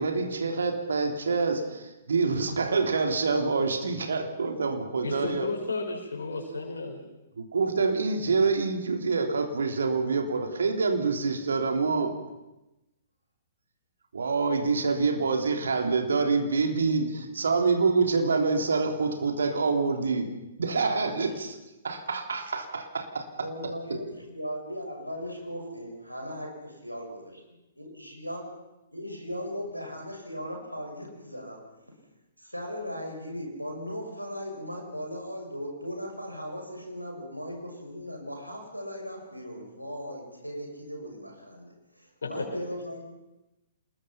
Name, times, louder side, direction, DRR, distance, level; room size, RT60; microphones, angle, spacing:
voice 1, 0.0-5.5 7.4-12.1 14.1-20.3 20.6-21.5 21.8-23.3 23.6-23.7, right 4 dB, 65° right, 4 dB, 3.5 m, -26 dB
voice 2, 5.0-7.0 42.2-42.6, left 3 dB, 65° left, -2 dB, 5.6 m, -33 dB
voice 3, 20.6-21.3 23.4-27.3 27.8-28.5 28.9-31.6 32.4-43.1, equal, 90° right, 2 dB, 6.4 m, -38 dB
28.0 x 21.0 x 5.9 m, 0.98 s
figure-of-eight pair, 115°, 0 cm